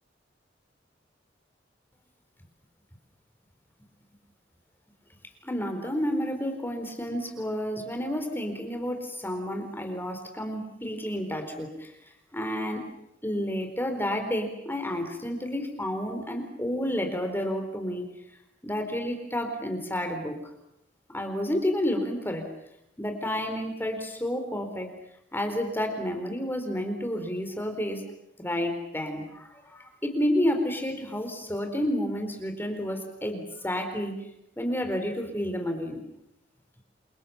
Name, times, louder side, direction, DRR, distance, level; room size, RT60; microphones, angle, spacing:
voice 1, 5.4-11.9 12.3-12.8 13.2-18.0 18.6-20.3 21.1-22.5 23.0-24.9 25.3-28.0 28.4-34.2 34.6-36.0, equal, 10° left, 5 dB, 4.3 m, -30 dB
29.5 x 26.0 x 7.1 m, 0.80 s
head